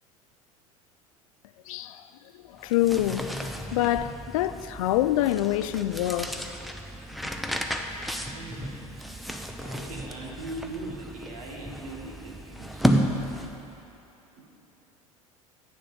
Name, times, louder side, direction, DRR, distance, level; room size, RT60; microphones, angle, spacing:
voice 1, 1.7-2.0 2.6-3.3 3.7-6.3, left 13 dB, 70° left, 0.4 m, -25 dB
sound 1, 2.6-13.8, equal, ahead, 0.6 m, -32 dB
voice 2, 8.2-8.8 9.3-12.8 14.4-14.5, right 2 dB, 75° right, 1.6 m, -40 dB
7.5 x 7.0 x 6.9 m
hypercardioid pair, 75°, 18 cm